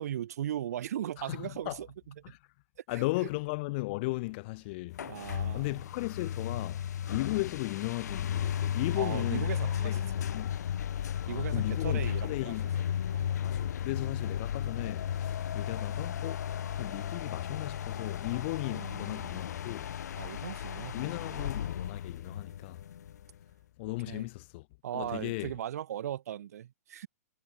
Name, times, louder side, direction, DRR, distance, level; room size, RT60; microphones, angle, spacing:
voice 1, 0.0-2.3 2.9-3.0 5.0-5.7 8.9-10.0 11.3-12.5 13.1-13.4 18.0-18.1 18.7-19.5 20.2-21.5 24.1-24.3 24.8-27.1, right 11 dB, 65° right, 1.7 m, -38 dB
voice 2, 1.2-1.8 2.2-2.4 2.9-9.5 9.8-10.6 11.2-12.7 13.4-19.9 20.9-22.8 23.8-24.7 24.9-25.5, left 23 dB, 40° left, 0.6 m, -36 dB
sound 1, 4.9-23.4, left 9 dB, 80° left, 1.1 m, -34 dB
hypercardioid pair, 150°, 9 cm